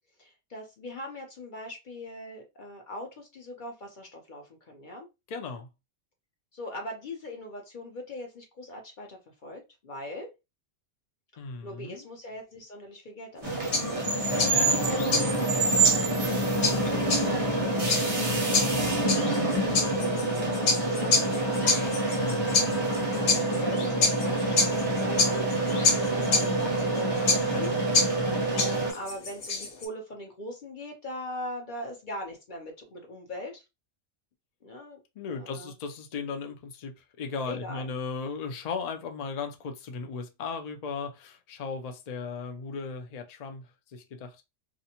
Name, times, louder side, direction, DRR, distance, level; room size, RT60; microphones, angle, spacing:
voice 1, 0.2-5.1 6.5-10.3 11.3-14.1 16.2-17.9 18.3-19.0 19.5-21.7 22.8-27.7 28.1-33.6 34.6-35.0 35.3-35.7 37.4-37.9, left 1 dB, 45° left, 0.7 m, -41 dB
voice 2, 5.3-5.7 11.4-12.0 14.4-15.9 22.2-22.8 27.4-27.6 35.2-44.4, left 5 dB, 65° left, 0.4 m, -37 dB
sound 1, 13.4-29.9, left 4 dB, 85° left, 1.2 m, -28 dB
sound 2, 13.4-28.9, right 2 dB, 35° right, 0.7 m, -26 dB
2.5 x 2.1 x 2.8 m
omnidirectional pair, 1.3 m